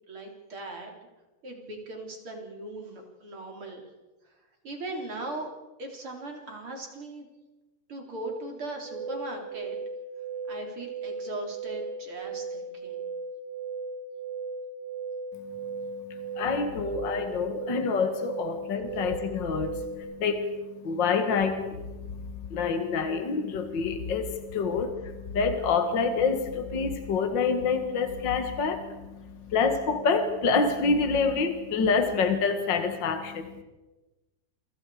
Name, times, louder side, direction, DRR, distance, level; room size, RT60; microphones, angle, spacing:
voice 1, 0.1-0.9 1.4-3.9 4.2-4.3 4.6-5.5 5.8-7.3 7.9-9.8 10.5-13.0, right 2 dB, 35° right, 1 dB, 4.3 m, -39 dB
sound 1, 8.9-20.0, right 4 dB, 70° right, 4.3 m, -37 dB
voice 2, 16.1-20.5 20.8-21.8 22.1-22.2 22.5-29.0 29.5-33.5, left 5 dB, 50° left, 7 dB, 1.4 m, -27 dB
28.5 x 25.0 x 5.0 m, 1.1 s
omnidirectional pair, 4.5 m